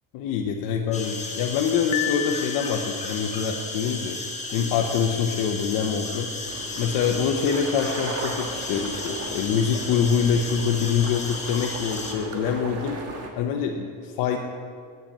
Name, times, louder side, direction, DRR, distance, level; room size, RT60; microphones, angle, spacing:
voice 1, 0.1-6.3 6.8-13.0 13.4-14.4, left 7 dB, 85° left, 1 dB, 0.9 m, -25 dB
sound 1, 0.9-12.1, left 3 dB, 20° left, 1.7 m, -34 dB
Piano, 1.9-3.2, left 14 dB, 55° left, 0.7 m, -31 dB
sound 2, 6.4-13.3, right 3 dB, 45° right, 1.6 m, -37 dB
8.7 x 8.1 x 7.4 m, 2.2 s
cardioid pair, 125°, 35 cm